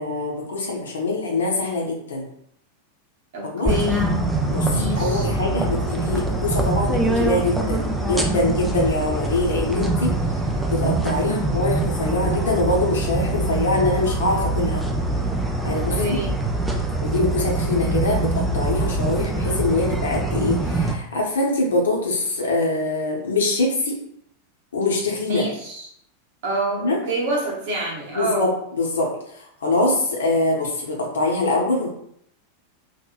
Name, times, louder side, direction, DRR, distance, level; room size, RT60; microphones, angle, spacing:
voice 1, 0.0-2.3 3.4-3.7 4.5-4.7 5.0-10.2 10.7-14.8 15.6-16.0 17.0-24.0 24.7-25.4 26.8-27.0 28.2-31.9, left 2 dB, 65° left, -1 dB, 0.7 m, -24 dB
voice 2, 3.3-4.1 4.7-5.3 11.2-11.5 15.9-16.3 25.3-25.9 26.4-28.5, right 1 dB, 50° right, -2 dB, 0.8 m, -27 dB
sound 1, 3.6-20.9, right 2 dB, 5° right, 0.4 m, -24 dB
2.8 x 2.4 x 2.3 m, 0.70 s
figure-of-eight pair, 90°, 0 cm